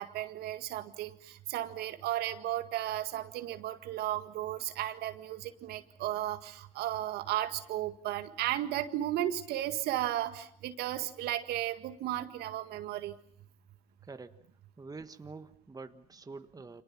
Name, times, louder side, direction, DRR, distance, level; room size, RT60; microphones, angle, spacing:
voice 1, 0.0-13.1, right 13 dB, 65° right, 9 dB, 1.9 m, -34 dB
voice 2, 14.0-14.4 14.8-16.8, right 4 dB, 20° right, 9 dB, 1.6 m, -46 dB
29.5 x 27.0 x 6.0 m, 0.65 s
hypercardioid pair, 55°, 18 cm